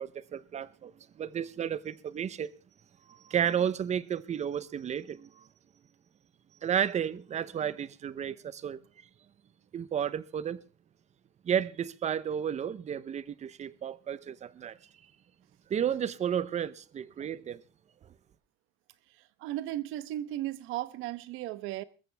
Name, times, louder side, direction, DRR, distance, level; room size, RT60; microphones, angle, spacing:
voice 1, 0.0-2.5 3.1-5.5 6.6-8.8 9.7-10.6 11.4-14.8 15.7-17.6, right 9 dB, 35° right, 0.8 m, -32 dB
voice 2, 19.1-21.8, right 14 dB, 75° right, 1.1 m, -36 dB
21.5 x 14.5 x 3.5 m
cardioid pair, 130°, 21 cm